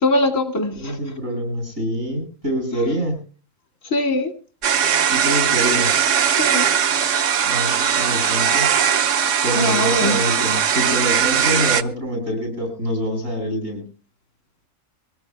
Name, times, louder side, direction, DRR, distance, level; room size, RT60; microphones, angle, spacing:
voice 1, 0.0-1.0 2.7-2.9 3.9-4.3 6.4-6.7 9.6-10.2, left 1 dB, 90° left, 5 dB, 2.6 m, -21 dB
voice 2, 0.8-3.2 5.1-5.9 7.5-8.7 9.4-13.8, equal, 85° right, 2 dB, 8.3 m, -25 dB
sound 1, 4.6-11.8, right 8 dB, 70° right, 1.2 m, -19 dB
23.5 x 18.0 x 2.2 m, 0.36 s
omnidirectional pair, 1.3 m